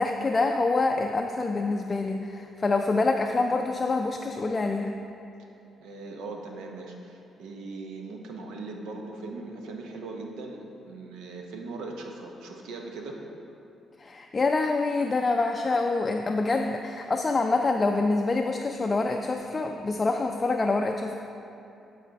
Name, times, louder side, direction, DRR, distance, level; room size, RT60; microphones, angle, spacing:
voice 1, 0.0-5.0 14.0-21.1, left 3 dB, 30° left, 3 dB, 0.3 m, -26 dB
voice 2, 5.8-13.2, right 3 dB, 90° right, 1 dB, 0.9 m, -39 dB
11.0 x 4.2 x 4.1 m, 2.8 s
cardioid pair, 90°, 0 cm